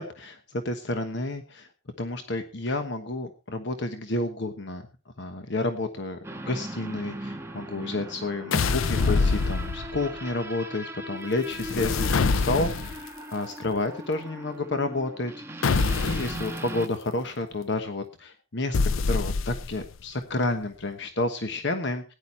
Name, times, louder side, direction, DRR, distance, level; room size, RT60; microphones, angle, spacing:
voice 1, 0.0-1.7 2.0-4.8 5.2-6.2 6.5-15.3 16.0-18.8 19.0-22.1, left 2 dB, 60° left, 7 dB, 1.2 m, -30 dB
sound 1, 6.2-16.9, right 1 dB, 15° right, 1.3 m, -39 dB
sound 2, 8.5-10.1 11.5-13.1 15.6-16.5 18.7-19.9, left 4 dB, 85° left, 0.5 m, -25 dB
16.5 x 10.5 x 4.3 m, 0.36 s
head